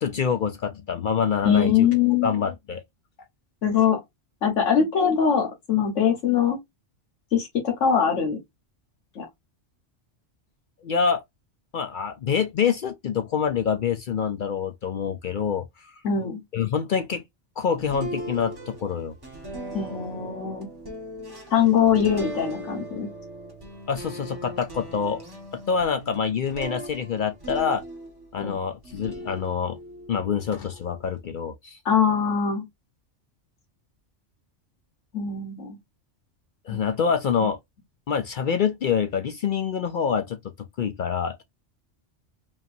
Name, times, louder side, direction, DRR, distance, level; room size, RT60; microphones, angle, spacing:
voice 1, 0.0-1.9 2.2-2.8 10.8-11.2 11.7-15.9 16.5-17.2 17.6-19.1 23.9-25.2 25.7-27.8 28.3-29.8 30.1-31.8 36.7-37.6 38.1-41.4, left 6 dB, 55° left, 0.6 m, -26 dB
voice 2, 1.4-2.3 3.6-4.0 4.4-6.6 7.3-8.4 9.1-9.3 16.0-16.4 19.7-20.7 21.5-23.1 28.4-28.6 31.8-32.6 35.1-35.8 36.7-36.8, left 7 dB, 90° left, 1.5 m, -22 dB
sound 1, 17.8-28.4 28.8-31.2, equal, 20° right, 1.6 m, -39 dB
5.4 x 2.7 x 2.6 m
omnidirectional pair, 1.2 m